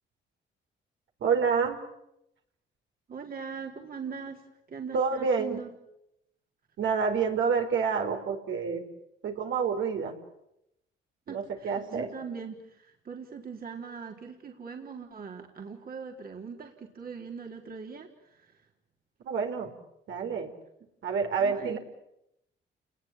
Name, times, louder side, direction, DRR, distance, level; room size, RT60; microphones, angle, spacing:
voice 1, 1.2-1.8 4.9-5.6 6.8-8.8 9.2-10.1 11.3-12.1 19.2-19.7 20.1-20.5 21.0-21.8, right 5 dB, 70° right, 3 dB, 4.9 m, -28 dB
voice 2, 3.1-4.4 4.7-5.7 11.3-18.6 21.4-21.8, right 6 dB, 50° right, 1 dB, 3.9 m, -41 dB
29.5 x 20.5 x 9.0 m, 0.81 s
cardioid pair, 90°, 20 cm